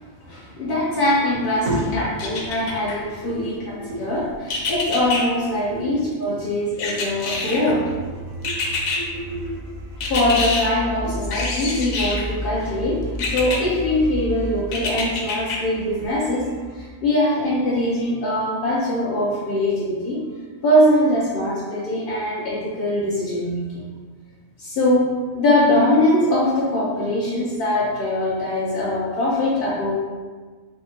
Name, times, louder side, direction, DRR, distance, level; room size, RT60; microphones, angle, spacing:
voice 1, 0.3-1.7 1.9-3.6 4.0-7.8 10.0-16.5 16.7-20.2 20.6-23.8 24.6-30.0, left 1 dB, 60° left, -6 dB, 0.6 m, -22 dB
voice 2, 1.6-2.7 3.0-4.0 5.7-5.9 6.3-6.4 7.6-7.7 8.2-8.5 8.9-9.6 11.0-11.1, equal, 65° right, -4 dB, 1.2 m, -31 dB
sound 1, 2.2-3.0 4.5-5.2 6.8-7.7 8.4-9.0 10.0-10.6 11.3-12.3 13.2-13.6 14.7-15.6 16.0-16.1, left 3 dB, 80° left, 1.0 m, -26 dB
sound 2, 7.8-16.9, left 1 dB, 90° right, 1.0 m, -33 dB
3.4 x 2.0 x 4.2 m, 1.5 s
omnidirectional pair, 1.4 m